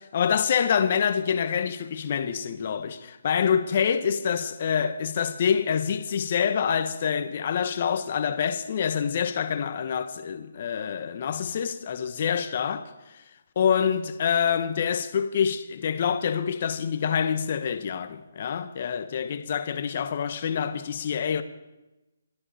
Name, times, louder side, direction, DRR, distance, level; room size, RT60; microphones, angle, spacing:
voice 1, 0.1-12.8 13.5-21.4, left 7 dB, 45° left, 1.3 m, -26 dB
22.5 x 13.0 x 4.4 m
figure-of-eight pair, 145°, 0 cm